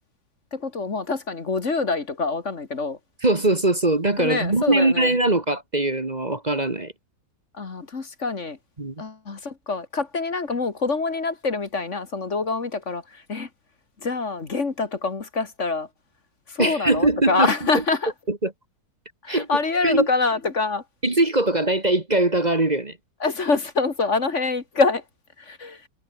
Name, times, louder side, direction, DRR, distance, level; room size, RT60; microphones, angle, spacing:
voice 1, 0.5-3.0 4.2-5.1 7.6-8.6 9.0-13.5 14.0-15.9 16.5-18.1 19.2-20.8 23.2-25.0 25.4-25.9, left 4 dB, 50° left, 2.2 m, -25 dB
voice 2, 3.2-6.9 8.8-9.0 16.6-17.5 17.7-17.8 18.3-18.5 19.3-19.5 19.8-20.1 21.0-23.0, right 2 dB, 25° right, 1.9 m, -21 dB
omnidirectional pair, 1.7 m